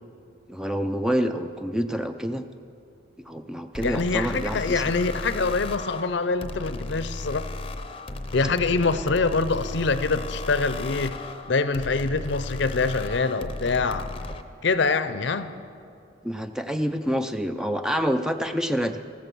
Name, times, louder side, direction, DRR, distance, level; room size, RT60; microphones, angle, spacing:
voice 1, 0.5-2.4 3.3-4.8 16.2-19.0, equal, 5° right, 8 dB, 0.4 m, -27 dB
sound 1, 3.7-14.4, left 2 dB, 30° left, 0.7 m, -35 dB
voice 2, 3.8-7.5 8.3-11.2 11.5-14.1 14.6-15.5, left 4 dB, 65° left, 12 dB, 0.6 m, -25 dB
14.5 x 13.5 x 6.2 m, 2.5 s
head